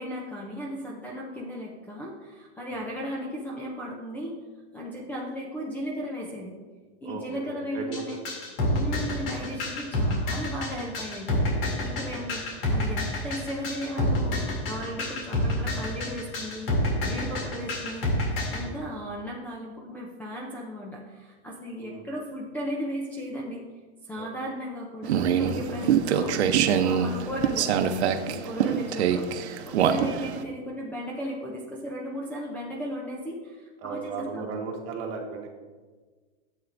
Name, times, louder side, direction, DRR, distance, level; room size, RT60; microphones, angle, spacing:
voice 1, 0.0-4.4 4.7-6.6 7.0-8.2 8.7-16.7 17.0-18.1 18.5-23.6 24.0-29.3 29.6-34.5, equal, 5° left, -2 dB, 0.5 m, -36 dB
voice 2, 7.0-8.3 11.9-12.1 18.6-18.9 21.8-22.0 24.1-24.3 28.6-28.7 33.8-35.5, right 4 dB, 40° right, 1 dB, 1.5 m, -37 dB
sound 1, 7.9-18.6, left 2 dB, 60° left, 2.8 m, -28 dB
sound 2, 25.0-30.4, right 8 dB, 85° right, 0.8 m, -25 dB
11.0 x 8.1 x 2.6 m, 1.4 s
supercardioid pair, 160°, 32 cm